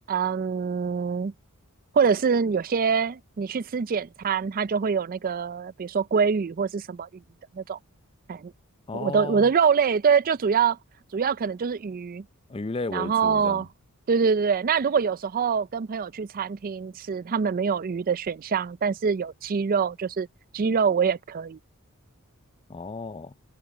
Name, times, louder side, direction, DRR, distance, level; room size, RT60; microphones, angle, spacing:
voice 1, 0.1-1.3 1.9-7.1 7.5-7.8 8.3-8.5 8.9-10.8 11.1-12.2 12.9-13.7 14.1-20.3 20.5-21.6, right 6 dB, 40° right, 0.4 m, -24 dB
voice 2, 8.9-9.5 12.5-13.6 22.7-23.3, left 3 dB, 25° left, 0.5 m, -34 dB
head